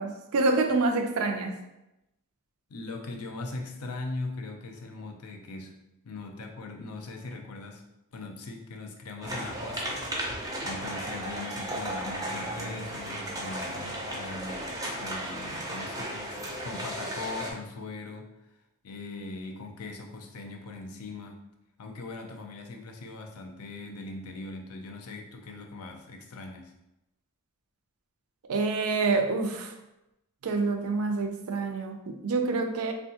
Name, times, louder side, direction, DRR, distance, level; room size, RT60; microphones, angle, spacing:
voice 1, 0.0-1.5 28.5-29.7 30.4-32.9, right 3 dB, 75° right, 5 dB, 0.4 m, -27 dB
voice 2, 2.7-5.7 6.0-7.9 8.1-18.3 18.8-21.4 21.8-26.7, left 3 dB, 80° left, 3 dB, 0.5 m, -40 dB
sound 1, 9.2-17.5, right 1 dB, 15° right, 0.4 m, -35 dB
3.4 x 2.2 x 2.7 m, 0.91 s
head